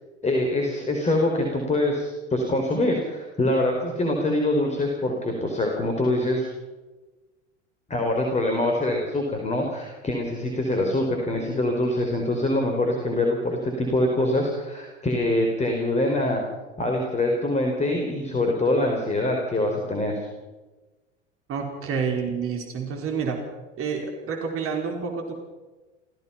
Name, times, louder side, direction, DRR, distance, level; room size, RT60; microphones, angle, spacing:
voice 1, 0.2-6.5 7.9-16.4 16.8-20.3, left 1 dB, 20° left, 2 dB, 4.4 m, -24 dB
voice 2, 21.5-23.4 23.8-25.3, right 6 dB, 35° right, 2 dB, 4.4 m, -28 dB
29.0 x 16.5 x 5.8 m, 1.2 s
figure-of-eight pair, 80°, 36 cm